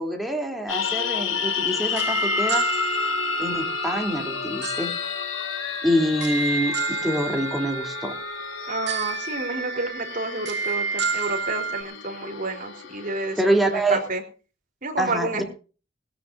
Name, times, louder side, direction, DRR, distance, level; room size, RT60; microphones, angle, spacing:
voice 1, 0.0-2.7 3.4-5.0 5.8-8.2 13.4-14.0 15.0-15.4, equal, ahead, 2 dB, 3.1 m, -25 dB
sound 1, 0.7-14.1, left 7 dB, 80° left, 1.7 m, -31 dB
sound 2, 1.3-11.8, right 4 dB, 65° right, 2.5 m, -30 dB
voice 2, 8.7-14.2 14.8-15.4, right 3 dB, 45° right, 3 dB, 3.7 m, -30 dB
20.5 x 17.0 x 2.6 m, 0.36 s
head